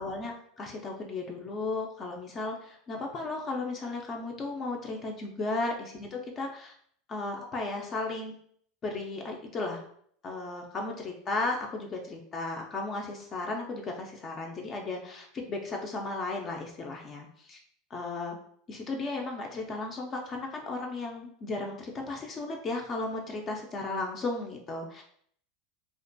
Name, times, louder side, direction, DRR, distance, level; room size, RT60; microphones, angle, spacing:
voice 1, 0.0-6.7 7.1-8.3 8.8-9.8 10.2-17.6 17.9-18.4 18.7-25.0, left 3 dB, 30° left, 1 dB, 0.4 m, -35 dB
2.4 x 2.1 x 2.5 m, 0.63 s
supercardioid pair, 130°, 0 cm